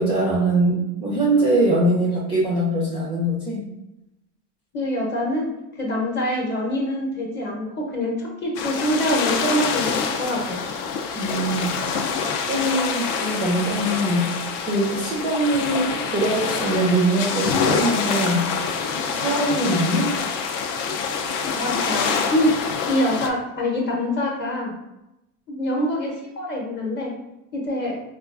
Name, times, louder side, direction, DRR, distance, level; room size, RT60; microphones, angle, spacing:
voice 1, 0.0-3.6 11.2-11.7 12.5-14.3 14.6-18.4 19.1-20.1, right 1 dB, 10° right, -5 dB, 0.4 m, -22 dB
voice 2, 4.7-5.5 5.8-9.9 10.2-10.6 21.6-22.5 22.9-24.7 25.5-27.1 27.5-28.0, left 1 dB, 25° left, -1 dB, 0.8 m, -25 dB
sound 1, 8.5-23.3, left 5 dB, 65° left, 0.6 m, -26 dB
4.3 x 2.3 x 2.4 m, 0.92 s
supercardioid pair, 125°, 47 cm